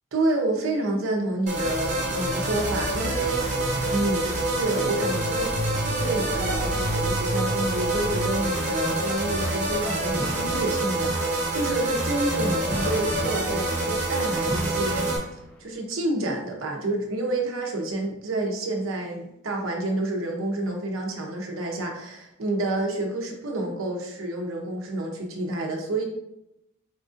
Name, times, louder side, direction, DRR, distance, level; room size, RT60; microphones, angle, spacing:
voice 1, 0.1-15.1 15.6-26.0, right 2 dB, 90° right, 1 dB, 0.7 m, -29 dB
sound 1, 1.5-15.2, right 1 dB, 35° right, 0.9 m, -26 dB
sound 2, 10.2-11.4 12.7-13.9 14.5-15.6, equal, 5° left, 0.3 m, -36 dB
4.5 x 2.5 x 2.5 m, 0.83 s
head